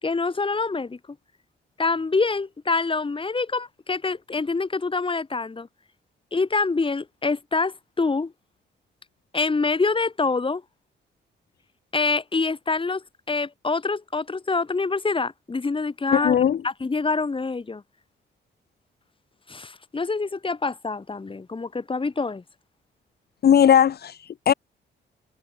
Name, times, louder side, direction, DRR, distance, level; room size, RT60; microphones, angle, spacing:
voice 1, 0.0-1.0 1.8-5.7 6.3-8.3 9.3-10.6 11.9-16.4 16.6-17.8 19.5-22.4, left 4 dB, 25° left, 3.6 m, -26 dB
voice 2, 16.1-16.6 23.4-24.5, left 9 dB, 55° left, 1.1 m, -18 dB
cardioid pair, 95°, 19 cm